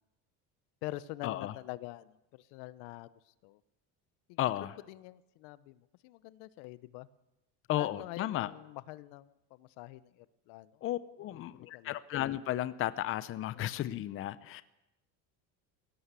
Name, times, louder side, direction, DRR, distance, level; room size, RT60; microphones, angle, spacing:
voice 1, 0.8-3.6 4.3-4.4 4.9-7.1 7.8-10.8 11.3-12.0 13.5-13.7, left 17 dB, 75° left, 17 dB, 1.0 m, -46 dB
voice 2, 4.4-4.7 7.7-8.5 10.8-14.6, left 13 dB, 35° left, 15 dB, 0.8 m, -34 dB
20.0 x 17.0 x 8.3 m, 0.91 s
cardioid pair, 165°, 38 cm